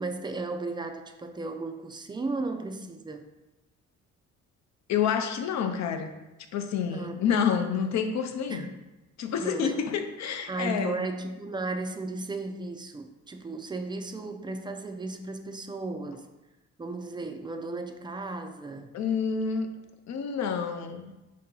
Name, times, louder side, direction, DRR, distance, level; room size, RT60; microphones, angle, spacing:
voice 1, 0.0-3.3 6.9-7.2 8.5-8.8 9.4-9.8 10.5-16.3 16.8-18.9, right 3 dB, 15° right, 6 dB, 0.3 m, -35 dB
voice 2, 4.9-6.1 6.5-8.7 9.2-11.0 18.9-19.7 20.1-21.1, left 7 dB, 65° left, 6 dB, 0.6 m, -28 dB
4.7 x 2.8 x 3.7 m, 1.0 s
cardioid pair, 90°, 30 cm